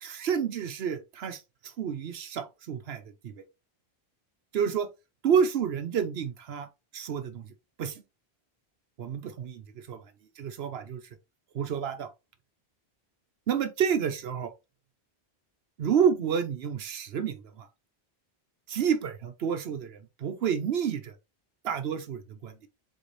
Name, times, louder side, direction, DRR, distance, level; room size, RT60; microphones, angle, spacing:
voice 1, 0.0-3.4 4.5-4.9 5.2-6.7 6.9-7.5 7.8-8.0 9.0-10.0 10.4-11.0 11.5-12.1 13.5-14.5 15.8-17.7 18.7-21.2 21.6-22.5, right 7 dB, 75° right, 0.9 m, -29 dB
3.9 x 3.9 x 3.2 m
omnidirectional pair, 1.1 m